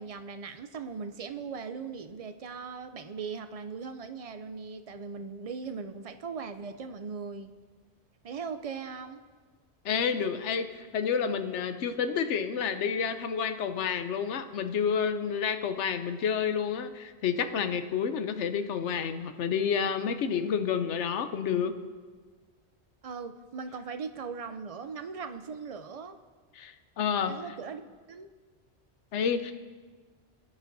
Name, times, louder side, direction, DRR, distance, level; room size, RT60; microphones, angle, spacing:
voice 1, 0.0-7.5 8.2-9.2 23.0-26.2 27.3-27.8 28.1-28.3, right 5 dB, 55° right, 9 dB, 0.4 m, -39 dB
voice 2, 9.8-21.9 26.6-27.4 29.1-29.5, left 7 dB, 90° left, 9 dB, 1.0 m, -29 dB
19.5 x 9.6 x 2.6 m, 1.5 s
omnidirectional pair, 1.2 m